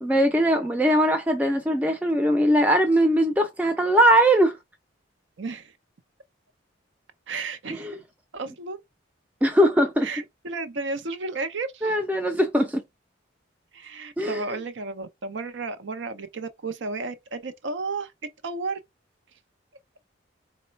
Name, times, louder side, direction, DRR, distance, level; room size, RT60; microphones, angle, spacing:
voice 1, 0.0-4.6 7.8-8.0 9.4-10.1 11.8-12.8 14.2-14.4, right 1 dB, 10° right, 0.4 m, -20 dB
voice 2, 5.4-5.7 7.3-8.0 8.3-8.8 10.0-12.0 13.7-18.1 18.4-18.8, right 3 dB, 65° right, 0.6 m, -33 dB
3.8 x 2.2 x 4.3 m
head